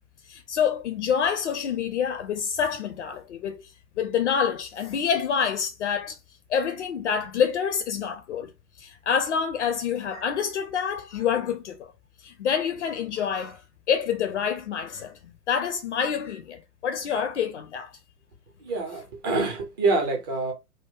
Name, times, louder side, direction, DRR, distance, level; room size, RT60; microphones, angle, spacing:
voice 1, 0.3-3.6 4.0-6.2 6.5-8.5 8.8-11.9 12.2-13.6 13.9-17.9, left 7 dB, 45° left, 0.6 m, -27 dB
voice 2, 18.6-20.5, right 3 dB, 15° right, 0.4 m, -26 dB
3.7 x 2.0 x 2.6 m
figure-of-eight pair, 105°, 49 cm